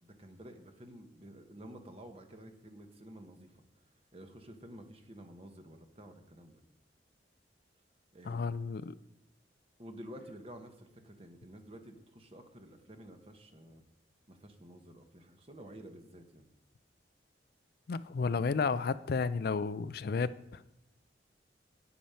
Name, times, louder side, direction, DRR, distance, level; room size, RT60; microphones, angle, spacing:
voice 1, 0.0-3.5 4.1-6.6 8.1-8.5 9.8-13.8 14.3-16.5, right 1 dB, 35° right, 6 dB, 1.1 m, -51 dB
voice 2, 8.3-9.0 17.9-20.3, left 4 dB, 60° left, 14 dB, 0.4 m, -32 dB
8.9 x 8.5 x 5.7 m, 0.88 s
head